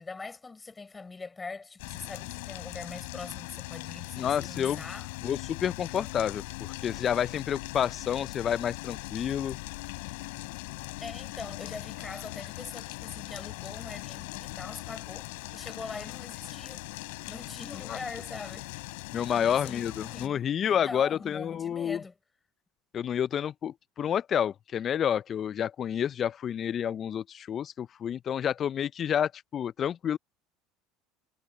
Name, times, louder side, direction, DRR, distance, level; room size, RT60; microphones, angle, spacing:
voice 1, 0.0-5.1 11.0-16.9 17.3-18.7 19.2-22.2, left 4 dB, 20° left, 5.3 m, -42 dB
sound 1, 1.8-20.3, left 26 dB, 80° left, 4.9 m, -40 dB
voice 2, 4.2-4.8 5.2-9.6 17.9-18.0 19.1-22.0 22.9-30.2, left 9 dB, 40° left, 0.4 m, -29 dB
supercardioid pair, 90°, 0 cm